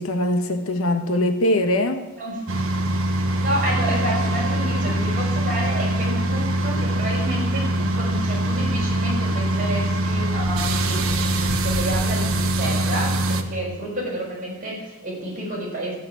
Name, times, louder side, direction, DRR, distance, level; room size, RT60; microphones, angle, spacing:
voice 1, 0.0-2.1, left 1 dB, 85° left, 7 dB, 1.3 m, -22 dB
sound 1, 2.5-13.4, right 1 dB, 75° right, 1.2 m, -23 dB
voice 2, 3.4-16.0, right 1 dB, 40° right, -4 dB, 5.7 m, -30 dB
13.5 x 6.8 x 9.5 m, 1.0 s
head